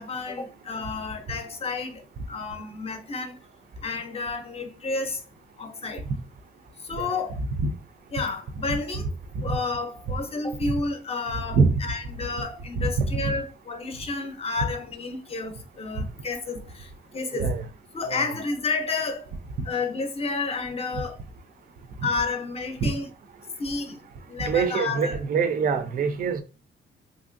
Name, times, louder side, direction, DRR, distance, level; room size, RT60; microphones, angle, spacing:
voice 1, 0.0-2.0 2.3-3.3 3.8-5.2 5.6-6.0 6.9-7.4 8.1-9.0 9.4-17.5 17.9-19.2 19.6-21.2 22.0-23.1 23.6-24.0 24.3-25.2, left 4 dB, 30° left, 0.5 m, -31 dB
voice 2, 17.3-17.6 18.1-18.3 22.0-22.1 22.8-22.9 24.4-26.4, right 5 dB, 45° right, 0.4 m, -24 dB
3.1 x 2.5 x 2.5 m
cardioid pair, 145°, 21 cm